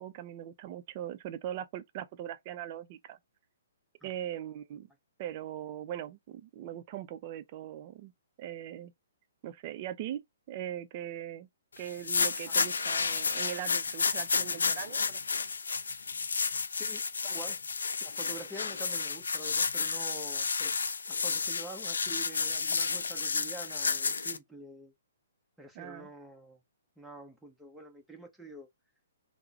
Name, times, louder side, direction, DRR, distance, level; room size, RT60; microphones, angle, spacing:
voice 1, 0.0-3.2 4.0-4.9 5.2-8.1 8.4-8.9 9.4-11.5 11.8-15.2 25.7-26.1, right 11 dB, 40° right, 0.5 m, -40 dB
sound 1, 11.9-24.4, left 5 dB, 75° left, 0.4 m, -31 dB
voice 2, 14.4-14.8 16.7-17.6 18.0-20.8 21.1-24.9 25.6-26.6 27.0-28.7, right 1 dB, ahead, 0.8 m, -47 dB
3.6 x 2.1 x 2.8 m
figure-of-eight pair, 125°, 0 cm